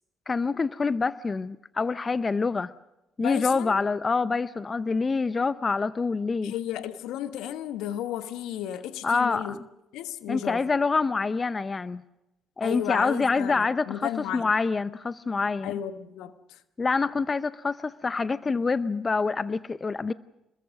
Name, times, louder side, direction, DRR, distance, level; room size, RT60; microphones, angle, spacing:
voice 1, 0.3-2.7 3.2-6.5 9.0-9.6 10.3-12.0 12.6-15.8 16.8-20.1, left 4 dB, 35° left, 0.7 m, -26 dB
voice 2, 3.2-3.8 6.4-9.6 9.9-10.6 12.6-14.5 15.6-16.6, left 11 dB, 75° left, 1.3 m, -33 dB
27.0 x 21.5 x 6.5 m
hypercardioid pair, 50°, 0 cm